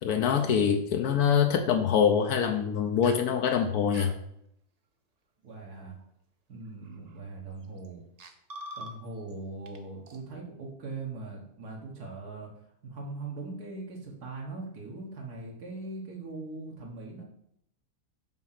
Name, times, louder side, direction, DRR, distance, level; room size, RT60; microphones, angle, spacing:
voice 1, 0.0-4.1, left 7 dB, 80° left, 5 dB, 1.2 m, -24 dB
sound 1, 3.0-3.3 3.9-4.2 5.9-6.0 6.9-7.2 7.8-7.9 8.2-9.3 9.7-9.8 10.1-10.2, right 1 dB, 55° right, 0.4 m, -44 dB
voice 2, 5.4-6.0 6.5-8.0 8.8-12.5 12.8-17.2, right 3 dB, 80° right, -2 dB, 2.0 m, -40 dB
6.0 x 4.8 x 5.8 m, 0.73 s
omnidirectional pair, 1.6 m